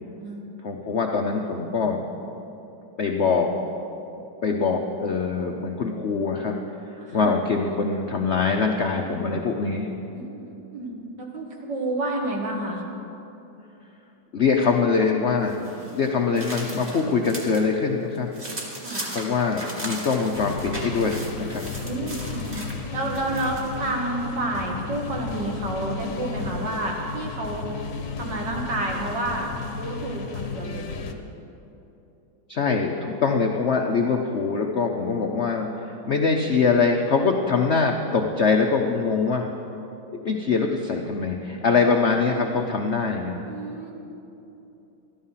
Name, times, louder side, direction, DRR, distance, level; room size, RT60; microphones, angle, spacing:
voice 1, 0.6-2.0 3.0-3.5 4.4-6.6 7.1-9.9 14.3-18.3 19.1-21.2 21.5-21.6 32.5-39.5 40.1-43.4, left 4 dB, 70° left, 2 dB, 0.6 m, -23 dB
voice 2, 7.0-7.3 10.1-12.8 18.8-19.0 21.8-22.7 22.9-27.7 28.2-29.5 29.7-30.9 43.5-43.9, right 2 dB, 60° right, -1 dB, 2.3 m, -30 dB
sound 1, 15.5-17.6 18.0-23.8, right 1 dB, 25° right, 2.1 m, -37 dB
sound 2, 20.3-31.1, left 5 dB, 50° left, 1.1 m, -34 dB
13.0 x 12.0 x 5.7 m, 2.9 s
omnidirectional pair, 2.2 m